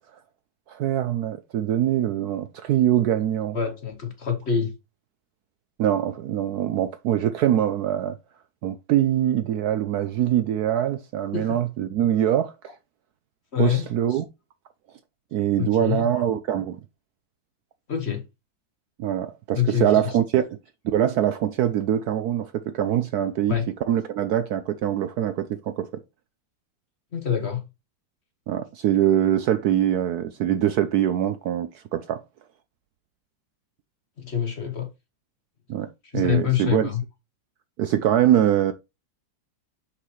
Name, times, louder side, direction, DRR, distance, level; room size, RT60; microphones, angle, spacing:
voice 1, 0.7-3.6 5.8-8.2 8.6-12.5 13.6-14.2 15.3-16.8 19.0-20.6 20.8-23.6 23.9-25.9 28.5-32.2 35.7-36.9 37.8-38.7, right 11 dB, 70° right, 0.9 m, -23 dB
voice 2, 3.5-4.7 11.3-11.6 13.5-14.2 15.6-16.2 17.9-18.2 19.5-20.1 23.5-23.7 27.1-27.7 34.2-34.9 36.1-37.0, left 8 dB, 45° left, 1.0 m, -26 dB
6.4 x 5.8 x 3.1 m
omnidirectional pair, 2.0 m